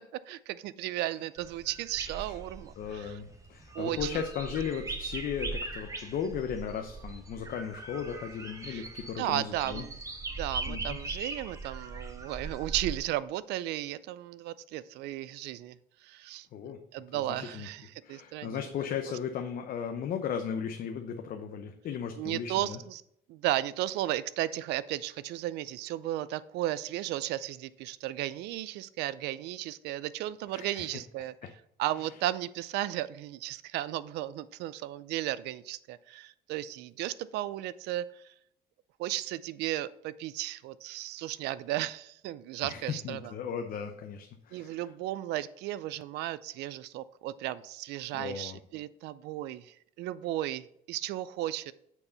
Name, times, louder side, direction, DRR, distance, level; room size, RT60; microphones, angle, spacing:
voice 1, 0.3-3.1 3.7-4.2 8.7-8.8 9.2-10.0 10.4-15.8 16.0-18.7 22.2-23.0 23.3-31.3 31.8-38.2 39.0-43.3 44.5-51.7, right 14 dB, 85° right, 17 dB, 0.4 m, -35 dB
sound 1, 1.4-13.0, right 3 dB, 20° right, 1.0 m, -40 dB
voice 2, 2.8-9.8 10.7-11.0 16.5-16.8 17.1-17.7 18.0-22.8 30.5-30.9 31.4-31.5 42.6-44.8 48.1-48.6, left 7 dB, 60° left, 5 dB, 0.7 m, -36 dB
8.7 x 4.6 x 4.0 m, 0.74 s
cardioid pair, 110°, 17 cm